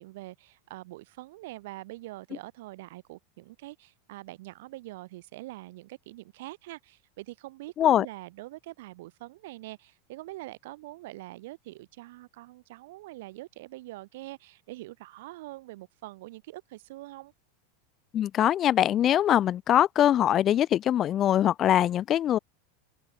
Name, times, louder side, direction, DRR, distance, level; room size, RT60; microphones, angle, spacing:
voice 1, 0.0-17.3, right 18 dB, 70° right, 3.2 m, -44 dB
voice 2, 18.1-22.4, left 11 dB, 35° left, 1.0 m, -22 dB
hypercardioid pair, 105°, 0 cm